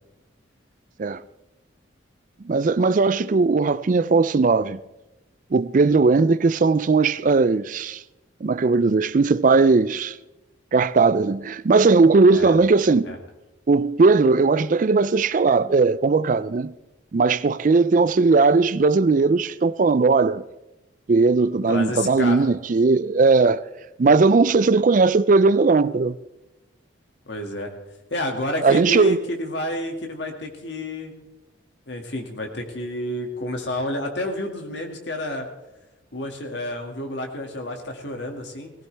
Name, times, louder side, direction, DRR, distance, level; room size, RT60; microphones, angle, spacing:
voice 1, 2.5-4.8 5.5-8.0 8.4-10.2 10.7-13.2 13.7-16.7 17.1-20.4 21.1-23.6 24.0-26.2 28.6-29.2, right 4 dB, 40° right, 0.4 m, -18 dB
voice 2, 21.7-22.5 27.3-27.7 28.1-31.1 31.9-35.5 36.1-38.7, left 1 dB, 60° left, 2.1 m, -30 dB
19.0 x 16.0 x 3.4 m
head